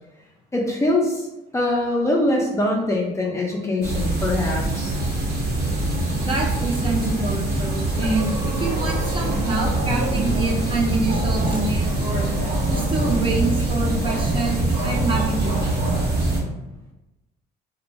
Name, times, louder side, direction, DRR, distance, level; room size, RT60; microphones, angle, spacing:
voice 1, 0.5-1.3 1.5-4.9, left 1 dB, 15° left, -2 dB, 0.5 m, -23 dB
sound 1, 3.8-16.4, right 2 dB, 70° right, 0.8 m, -23 dB
voice 2, 6.1-12.2 12.7-15.7, right 2 dB, 30° right, -1 dB, 0.6 m, -26 dB
2.5 x 2.1 x 3.1 m, 0.99 s
cardioid pair, 110°, 17 cm